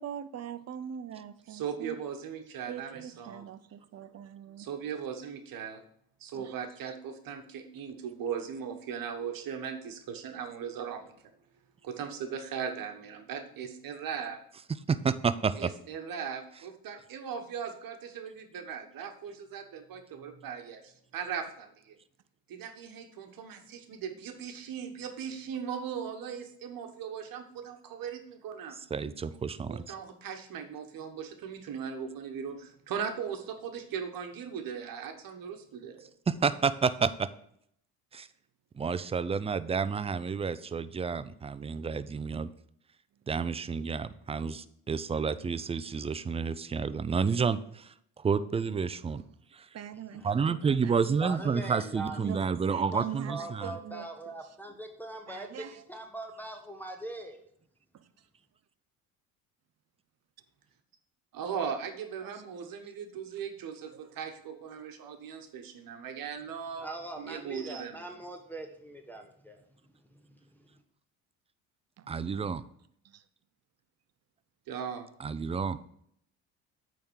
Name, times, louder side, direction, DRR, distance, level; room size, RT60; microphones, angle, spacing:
voice 1, 0.0-2.0 2.7-3.6 3.9-4.7 6.3-6.6 49.7-51.0 52.2-52.4 52.7-54.1 55.3-55.8 57.9-58.1 62.2-62.4 63.9-64.1 72.0-72.4 73.0-73.2, right 9 dB, 40° right, 13 dB, 0.7 m, -43 dB
voice 2, 1.5-3.4 4.6-5.8 6.2-11.1 11.8-14.4 15.6-22.0 22.5-28.8 29.7-36.0 61.3-66.9 67.2-68.0 74.7-75.1, right 7 dB, 55° right, 6 dB, 1.3 m, -38 dB
voice 3, 14.7-15.7 28.9-29.9 36.3-37.3 38.1-38.3 38.7-42.5 43.3-49.2 49.5-49.7 50.2-53.7 72.1-72.6 75.2-75.8, right 5 dB, 15° right, 15 dB, 0.4 m, -30 dB
voice 4, 51.2-52.6 52.9-57.4 66.8-69.6 70.1-70.8, right 2 dB, 5° left, 2 dB, 1.1 m, -42 dB
8.6 x 3.8 x 6.3 m, 0.68 s
supercardioid pair, 75°, 40 cm